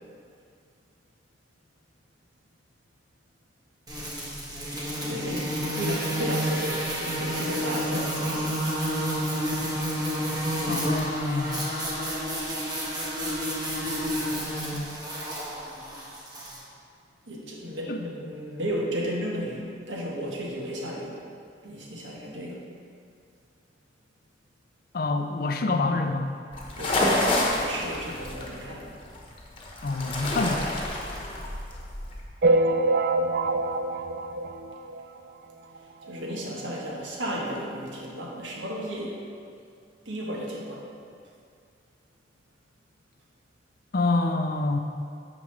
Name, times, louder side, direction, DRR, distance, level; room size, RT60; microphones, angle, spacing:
sound 1, 3.9-16.6, equal, 20° right, 1.3 m, -30 dB
voice 1, 5.0-8.6 17.3-21.2 21.6-22.6 26.8-28.9 31.1-31.4 36.1-39.2 40.0-40.8, equal, 85° right, -2 dB, 1.3 m, -34 dB
voice 2, 10.7-11.7 14.7-14.9 17.9-18.0 24.9-26.3 29.8-30.7 43.9-44.8, left 3 dB, 55° left, 6 dB, 0.5 m, -27 dB
sound 2, 26.5-32.3, left 1 dB, 30° left, 1.0 m, -29 dB
sound 3, 32.4-35.3 35.8-35.9 36.0-36.2 36.5-36.6 37.4-37.5 38.0-38.1, right 2 dB, 55° right, 0.4 m, -25 dB
9.2 x 6.1 x 3.3 m, 2.3 s
head